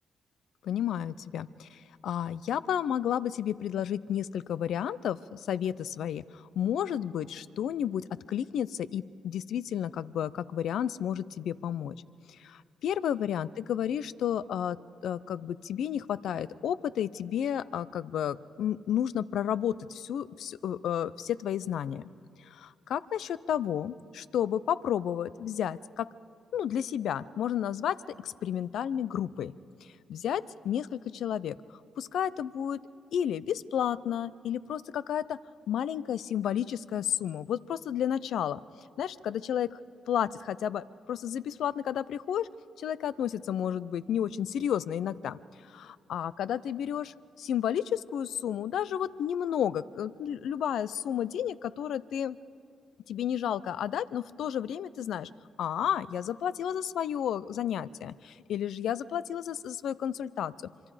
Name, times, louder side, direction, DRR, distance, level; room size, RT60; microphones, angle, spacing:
voice 1, 0.6-11.9 12.3-14.8 15.0-22.0 22.5-26.1 26.5-29.5 30.1-32.8 33.1-35.4 35.7-38.6 39.0-39.8 40.1-42.5 42.8-45.4 45.7-52.4 53.1-55.3 55.6-60.5, left 9 dB, 75° left, 17 dB, 0.5 m, -32 dB
25.5 x 24.0 x 5.0 m, 2.3 s
supercardioid pair, 65°, 0 cm